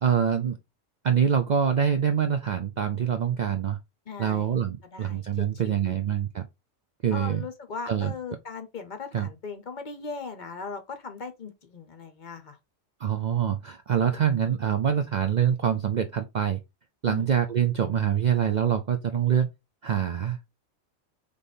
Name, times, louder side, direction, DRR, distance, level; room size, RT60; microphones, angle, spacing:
voice 1, 0.0-0.6 1.0-3.8 4.2-6.5 7.0-7.4 7.9-8.1 9.1-9.3 13.0-16.6 17.0-19.5 19.8-20.4, right 8 dB, 90° right, 0.4 m, -25 dB
voice 2, 4.1-4.6 4.9-6.0 7.1-12.6 17.1-17.3, left 5 dB, 45° left, 0.7 m, -39 dB
3.4 x 3.4 x 4.0 m
omnidirectional pair, 1.3 m